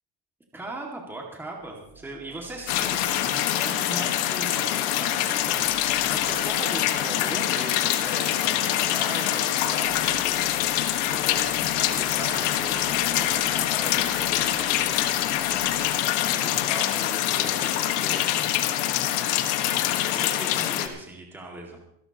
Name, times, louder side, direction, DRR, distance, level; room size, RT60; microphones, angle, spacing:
voice 1, 0.5-10.4 10.8-15.3 16.2-18.4 19.6-21.8, right 2 dB, 5° right, -1 dB, 2.1 m, -39 dB
sound 1, 1.6-16.6, right 5 dB, 50° right, 5.0 m, -50 dB
sound 2, 2.7-20.9, left 12 dB, 65° left, 1.5 m, -25 dB
26.0 x 12.0 x 3.0 m, 0.73 s
cardioid pair, 160°, 36 cm